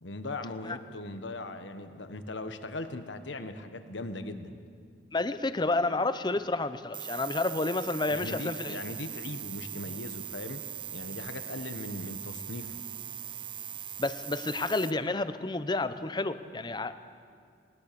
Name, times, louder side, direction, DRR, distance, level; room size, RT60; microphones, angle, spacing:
voice 1, 0.0-4.5 8.1-10.6 10.9-12.8, left 2 dB, 75° left, 9 dB, 1.3 m, -39 dB
voice 2, 5.1-8.8 14.0-16.9, left 2 dB, 25° left, 12 dB, 0.7 m, -30 dB
sound 1, 6.9-14.9, right 10 dB, 25° right, 0.6 m, -40 dB
20.0 x 20.0 x 6.9 m, 2.3 s
head